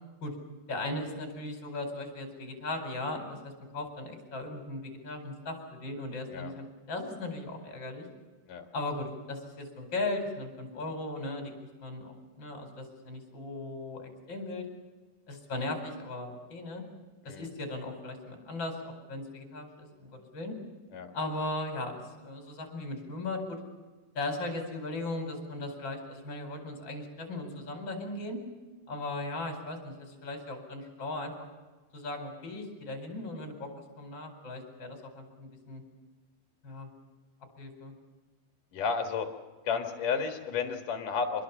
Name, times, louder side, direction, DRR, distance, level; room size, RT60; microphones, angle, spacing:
voice 1, 0.7-8.1 8.7-11.5 11.8-14.6 15.3-16.8 17.2-20.5 21.1-23.6 24.1-28.4 28.9-31.3 31.9-33.7 34.0-35.8 36.6-36.9 37.6-37.9, left 2 dB, 25° left, 4 dB, 4.8 m, -37 dB
voice 2, 38.7-39.3 39.7-41.4, left 5 dB, 55° left, 5 dB, 2.7 m, -32 dB
26.0 x 21.5 x 7.2 m, 1.3 s
omnidirectional pair, 5.5 m